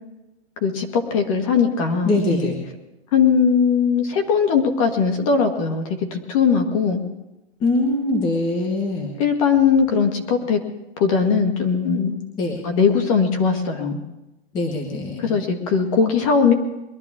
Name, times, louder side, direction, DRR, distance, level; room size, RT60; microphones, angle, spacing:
voice 1, 0.6-2.5 3.1-7.0 9.2-10.6 11.0-12.1 12.6-14.0 15.2-16.5, left 6 dB, 30° left, 4 dB, 1.7 m, -19 dB
voice 2, 2.0-2.6 7.6-9.1 12.4-12.7 14.5-15.4, left 2 dB, 15° left, 1 dB, 1.4 m, -23 dB
22.5 x 12.5 x 3.7 m, 0.98 s
hypercardioid pair, 170°, 33 cm